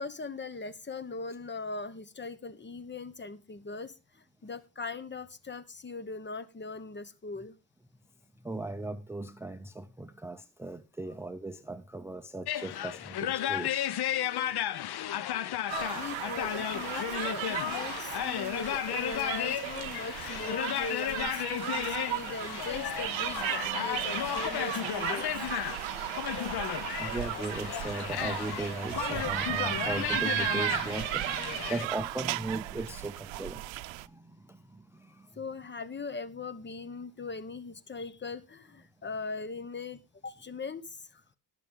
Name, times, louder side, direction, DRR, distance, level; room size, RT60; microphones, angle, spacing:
voice 1, 0.0-7.5 15.9-25.3 35.4-41.2, left 4 dB, 25° left, 1.0 m, -40 dB
voice 2, 8.4-13.8 21.9-22.0 23.4-23.7 26.3-26.4 27.0-33.7 33.9-35.3, right 2 dB, 5° right, 0.6 m, -38 dB
sound 1, 12.5-31.9, left 11 dB, 60° left, 0.8 m, -34 dB
sound 2, 15.7-34.1, right 18 dB, 90° right, 0.6 m, -35 dB
20.0 x 6.8 x 3.6 m
cardioid pair, 105°, 44 cm